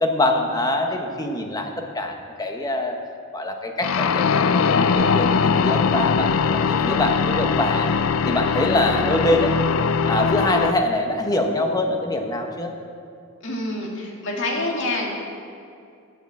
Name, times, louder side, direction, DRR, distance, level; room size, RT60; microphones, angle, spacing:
voice 1, 0.0-3.0 3.3-7.9 8.2-9.6 10.1-12.7, left 1 dB, 20° left, 3 dB, 1.0 m, -24 dB
sound 1, 3.8-10.7, left 6 dB, 80° left, 0.4 m, -21 dB
voice 2, 13.4-15.1, left 2 dB, 65° left, -1 dB, 2.2 m, -26 dB
10.0 x 7.6 x 7.4 m, 2.4 s
head